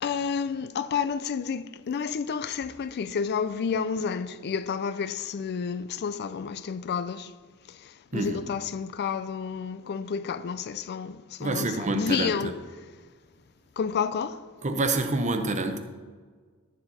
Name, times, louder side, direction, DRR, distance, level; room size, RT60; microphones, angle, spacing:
voice 1, 0.0-7.3 8.1-12.6 13.8-14.4, left 6 dB, 50° left, 0.4 m, -30 dB
voice 2, 8.1-8.4 11.4-12.5 14.6-15.8, right 2 dB, 35° right, 0.8 m, -27 dB
11.5 x 7.2 x 4.1 m
head